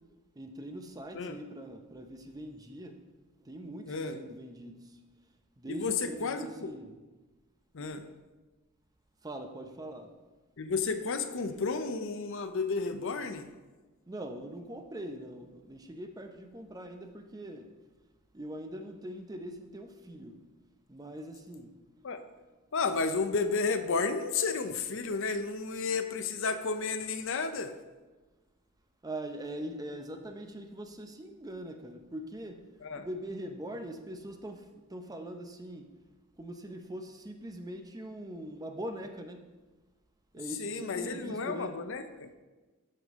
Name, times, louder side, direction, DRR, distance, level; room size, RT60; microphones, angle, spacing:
voice 1, 0.4-3.0 3.4-5.0 5.6-6.9 9.2-10.1 14.1-17.7 18.3-20.4 20.9-21.7 29.0-32.6 33.0-35.9 36.4-39.4 40.3-41.7, right 1 dB, 15° right, 6 dB, 0.6 m, -42 dB
voice 2, 6.2-6.7 7.7-8.1 10.6-13.5 22.0-22.2 22.7-27.7 32.8-33.1 40.6-42.3, left 4 dB, 65° left, 9 dB, 0.6 m, -32 dB
13.5 x 5.3 x 3.6 m, 1.2 s
head